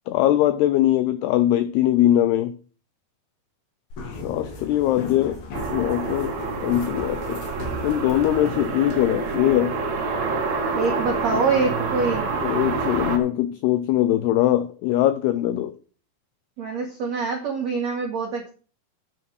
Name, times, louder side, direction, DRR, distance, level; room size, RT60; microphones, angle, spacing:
voice 1, 0.1-2.6 4.1-5.4 5.7-6.3 6.6-7.4 7.8-9.7 11.3-11.4 12.4-15.7, left 13 dB, 90° left, 2.3 m, -21 dB
sound 1, 3.9-9.4, left 2 dB, 60° left, 3.9 m, -37 dB
sound 2, 5.5-13.2, right 4 dB, 50° right, 2.3 m, -27 dB
voice 2, 10.7-12.3 16.6-18.5, right 4 dB, 75° right, 1.6 m, -25 dB
9.8 x 5.7 x 6.2 m
omnidirectional pair, 5.4 m